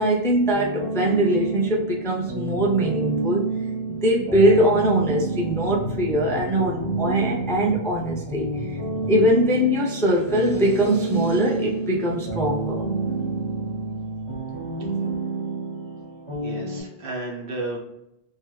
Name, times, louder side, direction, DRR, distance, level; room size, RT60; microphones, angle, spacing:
voice 1, 0.0-3.4 4.0-8.8 9.1-12.8, right 1 dB, 5° left, -2 dB, 0.4 m, -22 dB
sound 1, 0.5-16.8, right 3 dB, 30° right, 1.2 m, -29 dB
sound 2, 5.6-9.9, left 1 dB, 65° left, 0.7 m, -37 dB
voice 2, 16.4-17.8, right 2 dB, 60° right, -1 dB, 1.1 m, -32 dB
3.2 x 2.3 x 3.1 m, 0.83 s
omnidirectional pair, 1.1 m